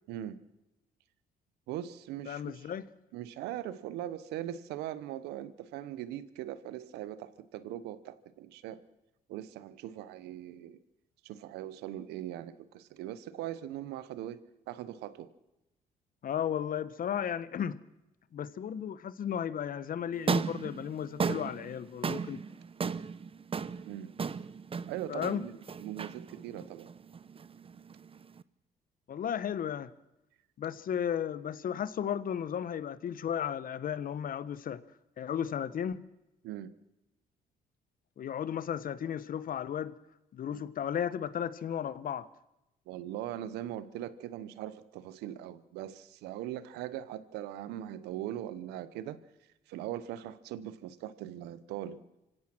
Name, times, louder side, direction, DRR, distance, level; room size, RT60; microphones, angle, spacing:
voice 1, 1.7-2.7 3.1-8.8 9.3-10.8 11.2-14.4 14.7-15.3 23.9-24.1 24.9-26.9 36.4-36.7 40.5-40.7 42.9-49.2 49.7-52.0, right 12 dB, 85° right, 15 dB, 1.1 m, -40 dB
voice 2, 2.3-2.9 16.2-17.8 18.3-22.4 25.1-25.4 29.1-29.9 30.6-34.8 35.2-36.1 38.2-40.0 40.3-42.3, left 9 dB, 60° left, 16 dB, 1.1 m, -34 dB
sound 1, 20.1-28.4, right 5 dB, 35° right, 0.8 m, -36 dB
26.0 x 16.5 x 6.2 m, 0.95 s
supercardioid pair, 70°, 17 cm